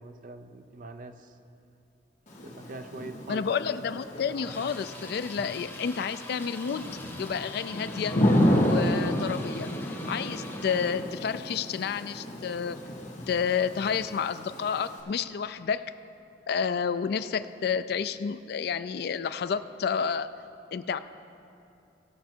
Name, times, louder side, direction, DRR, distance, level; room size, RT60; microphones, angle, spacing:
voice 1, 0.0-1.3 2.4-3.5, right 2 dB, 50° right, 8 dB, 0.5 m, -43 dB
Thunder / Rain, 2.3-15.0, equal, 45° left, 1.4 m, -31 dB
voice 2, 3.3-6.9 7.2-8.2 8.6-9.7 10.0-12.8 13.3-15.8 16.5-20.3 20.7-21.0, left 6 dB, 60° left, 12 dB, 0.3 m, -30 dB
sound 1, 4.4-11.1, left 2 dB, 15° left, 0.9 m, -45 dB
17.0 x 6.1 x 4.5 m, 2.8 s
head